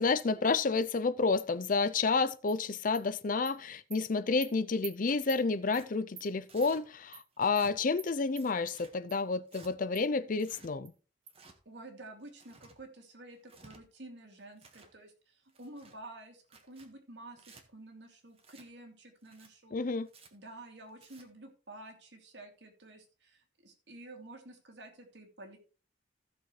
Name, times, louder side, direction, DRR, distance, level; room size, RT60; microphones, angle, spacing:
voice 1, 0.0-10.9 19.7-20.1, left 4 dB, 50° left, 0.5 m, -30 dB
Animal, 2.5-2.6 2.9-3.0 3.5-3.6 3.9-4.0 4.4-4.5 4.8-4.9 5.3-5.4 5.7-5.8 6.2-6.3 6.6-6.7 7.1-7.2 7.6-7.7 8.0-8.1 8.4-8.8 9.1-9.2 9.5-9.6 9.9-10.0 10.4-10.5 10.9-11.0 11.3-11.4, right 8 dB, 60° right, 1.8 m, -46 dB
Tearing, 5.1-5.3 5.7-5.9 6.5-6.8 7.4-7.8 8.3-8.9 9.5-9.7 10.3-10.7 11.3-11.6 12.2-12.8 13.4-13.8 14.4-14.9 15.5-16.0 16.4-16.9 17.4-17.6 18.4-18.7 19.2-19.5 20.1-20.3 20.9-21.2, right 3 dB, 35° right, 1.5 m, -57 dB
voice 2, 11.6-20.0 20.3-25.6, right 2 dB, 75° right, 2.6 m, -51 dB
15.5 x 6.6 x 3.2 m
head